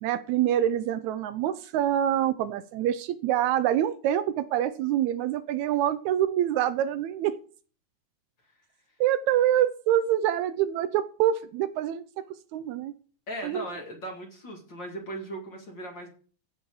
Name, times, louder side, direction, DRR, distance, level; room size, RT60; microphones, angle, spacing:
voice 1, 0.0-7.3 9.0-12.0 12.5-12.9 13.4-13.6, right 11 dB, 80° right, 13 dB, 1.7 m, -26 dB
voice 2, 13.3-16.1, right 1 dB, 40° left, 1 dB, 2.4 m, -38 dB
16.0 x 6.0 x 4.7 m, 0.42 s
omnidirectional pair, 3.8 m